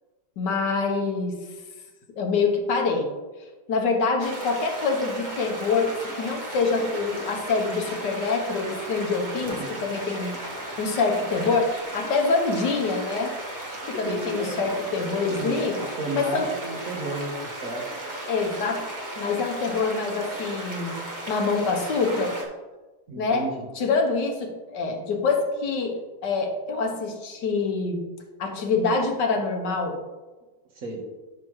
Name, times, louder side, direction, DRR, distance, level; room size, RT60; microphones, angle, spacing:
voice 1, 0.4-1.3 2.2-3.1 3.7-10.3 10.8-15.8 16.1-16.5 18.3-18.9 19.2-20.9 21.3-22.3 23.2-23.5 23.8-25.9 26.2-28.0 28.4-30.0, left 4 dB, 80° left, 3 dB, 1.7 m, -25 dB
sound 1, 4.2-22.4, right 1 dB, 30° right, 1.1 m, -35 dB
voice 2, 14.0-14.6 15.1-17.4 17.6-17.9 23.1-23.7 30.7-31.0, right 2 dB, 55° right, 1 dB, 1.6 m, -33 dB
11.0 x 5.8 x 3.1 m, 1.2 s
omnidirectional pair, 1.8 m